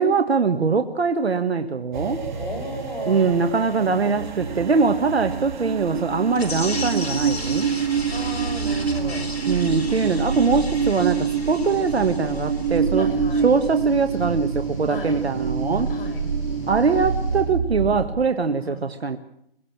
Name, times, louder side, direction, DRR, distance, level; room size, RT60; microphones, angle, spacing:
voice 1, 0.0-2.2 3.1-7.7 9.5-13.1 13.4-15.9 16.7-19.2, right 4 dB, 80° right, 7 dB, 1.6 m, -22 dB
sound 1, 1.9-18.1, right 6 dB, 50° right, 2.6 m, -26 dB
voice 2, 2.3-3.3 3.9-4.1 8.1-9.3 10.1-10.5 11.7-12.1 13.0-13.5 14.9-15.2 15.9-16.2 18.6-18.8, left 3 dB, 60° left, 6 dB, 7.1 m, -36 dB
sound 2, 6.4-12.8, left 3 dB, 80° left, 5.2 m, -35 dB
sound 3, 7.4-17.4, left 2 dB, 30° left, 7.3 m, -47 dB
23.0 x 17.5 x 7.3 m, 0.73 s
hypercardioid pair, 155°, 31 cm